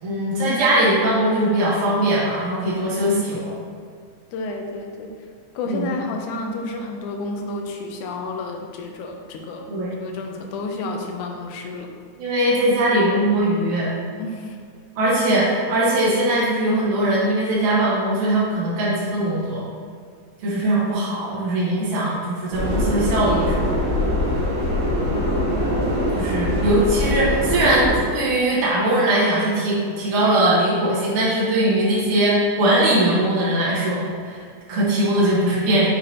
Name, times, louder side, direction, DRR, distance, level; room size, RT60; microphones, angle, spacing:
voice 1, 0.0-3.5 5.7-5.9 9.7-9.9 12.2-13.9 15.0-19.6 20.4-23.7 26.1-35.9, right 1 dB, 85° right, -8 dB, 3.0 m, -20 dB
voice 2, 4.3-5.1 5.5-9.7 10.0-11.9 14.2-14.6 25.1-25.9, left 2 dB, 90° left, 2 dB, 2.2 m, -31 dB
Subway metro underground, 22.5-28.0, left 1 dB, 55° right, 2.7 m, -22 dB
7.0 x 6.6 x 2.9 m, 2.1 s
omnidirectional pair, 3.4 m